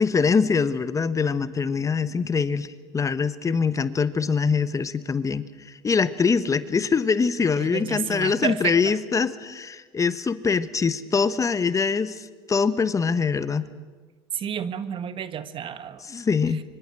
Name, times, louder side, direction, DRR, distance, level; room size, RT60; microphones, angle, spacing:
voice 1, 0.0-13.7 16.1-16.6, left 5 dB, 25° left, 13 dB, 1.2 m, -23 dB
voice 2, 7.6-8.9 14.3-16.0, right 8 dB, 45° right, 12 dB, 1.6 m, -30 dB
25.0 x 24.5 x 7.7 m, 1.3 s
hypercardioid pair, 85°, 13 cm